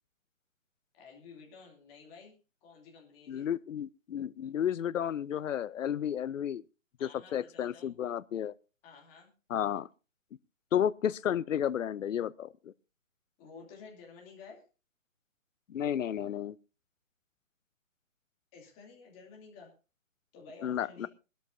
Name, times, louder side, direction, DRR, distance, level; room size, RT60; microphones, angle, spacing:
voice 1, 0.9-2.3 2.6-3.5 7.0-7.9 8.8-9.3 13.4-14.6 16.2-16.3 18.5-19.7 20.3-21.1, left 5 dB, 15° left, 2.8 m, -52 dB
voice 2, 3.3-6.6 7.0-8.5 9.5-9.9 10.7-12.5 15.7-16.5 20.6-21.1, left 9 dB, 70° left, 0.6 m, -32 dB
22.0 x 12.5 x 2.7 m
hypercardioid pair, 160°, 40 cm